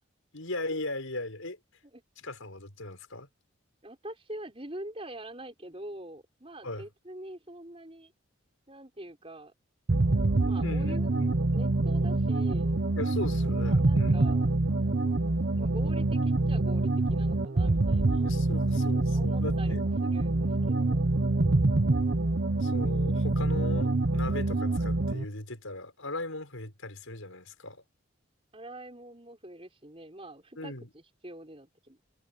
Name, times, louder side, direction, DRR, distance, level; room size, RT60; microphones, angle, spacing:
voice 1, 0.3-1.6 2.2-3.3 6.6-6.9 10.6-11.4 13.0-14.2 18.2-19.8 22.6-27.8 30.6-30.9, left 2 dB, 80° left, 5.8 m, -38 dB
voice 2, 3.8-8.1 8.7-9.5 10.4-11.1 11.5-12.7 13.6-14.5 15.5-18.3 19.1-19.8 20.0-21.1 28.5-32.0, right 1 dB, 25° right, 5.5 m, -44 dB
sound 1, 9.9-25.2, right 2 dB, 55° right, 0.8 m, -26 dB
head